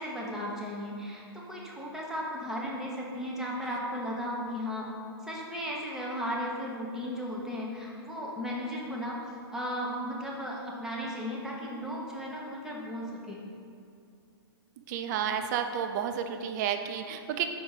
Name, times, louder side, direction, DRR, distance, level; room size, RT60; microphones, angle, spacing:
voice 1, 0.0-4.9 5.2-9.2 9.5-13.4, equal, 5° right, -4 dB, 1.0 m, -35 dB
voice 2, 14.9-17.5, right 8 dB, 45° right, 7 dB, 0.5 m, -31 dB
5.4 x 4.2 x 5.7 m, 2.5 s
hypercardioid pair, 130°, 13 cm